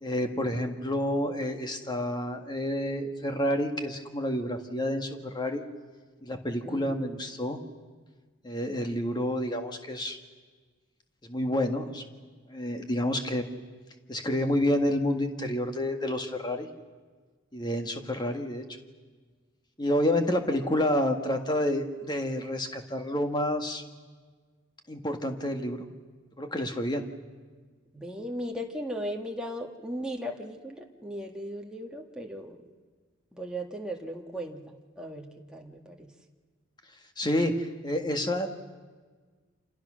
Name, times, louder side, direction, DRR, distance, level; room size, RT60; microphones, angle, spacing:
voice 1, 0.0-5.6 6.2-7.6 8.4-10.2 11.3-12.0 12.5-13.4 14.1-16.7 17.5-18.7 19.8-23.8 24.9-25.8 26.4-27.0 37.2-38.5, left 1 dB, 20° left, 5 dB, 1.7 m, -29 dB
voice 2, 6.6-7.1 27.9-32.6 33.3-36.1, equal, 5° right, 0 dB, 1.7 m, -37 dB
29.0 x 26.5 x 6.4 m, 1.5 s
head